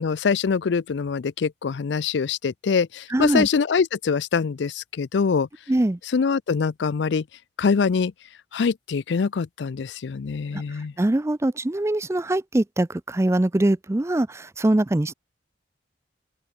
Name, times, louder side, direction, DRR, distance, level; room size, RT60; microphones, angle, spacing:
voice 1, 0.0-5.5 6.1-7.2 7.6-8.1 8.5-10.9, left 5 dB, 80° left, 0.4 m, -24 dB
voice 2, 3.1-3.5 5.7-6.0 10.5-10.6 11.0-15.1, right 1 dB, 15° right, 0.4 m, -22 dB
open air
head